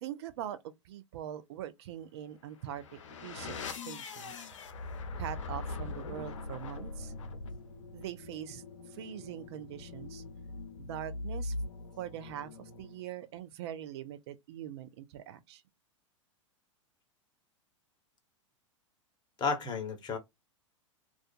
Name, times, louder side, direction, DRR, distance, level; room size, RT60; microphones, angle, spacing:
voice 1, 0.0-4.5 5.2-7.1 7.9-10.2 10.8-11.5 12.0-15.6, right 11 dB, 55° right, 0.4 m, -43 dB
sound 1, 2.5-13.2, left 3 dB, 70° left, 0.5 m, -42 dB
voice 2, 19.4-20.2, left 5 dB, 25° left, 0.9 m, -32 dB
2.4 x 2.3 x 2.3 m
figure-of-eight pair, 95°, 17 cm